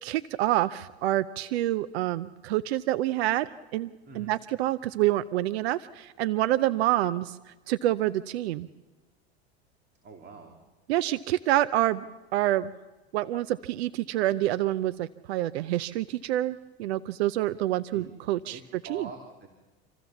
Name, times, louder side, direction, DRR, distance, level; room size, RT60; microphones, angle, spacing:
voice 1, 0.0-7.4 7.7-8.7 10.9-12.1 12.3-12.7 13.1-18.6 18.9-19.1, right 15 dB, 80° right, 17 dB, 0.6 m, -27 dB
voice 2, 4.1-4.4 10.0-10.6 17.9-18.1 18.5-19.5, right 4 dB, 35° right, 4 dB, 2.6 m, -44 dB
26.5 x 14.5 x 7.1 m, 1.2 s
hypercardioid pair, 100°, 32 cm